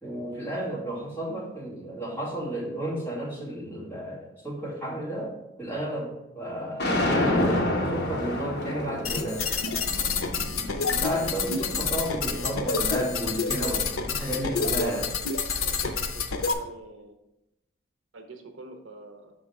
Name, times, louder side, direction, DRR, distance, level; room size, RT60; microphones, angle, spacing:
voice 1, 0.0-9.5 10.9-15.1, right 1 dB, 10° left, -7 dB, 2.0 m, -32 dB
sound 1, 6.8-12.9, left 1 dB, 50° left, 1.1 m, -29 dB
sound 2, 9.0-16.5, left 5 dB, 85° left, 0.6 m, -28 dB
voice 2, 15.6-17.1 18.1-19.3, right 3 dB, 70° right, 5 dB, 0.7 m, -45 dB
6.3 x 3.9 x 4.7 m, 0.91 s
head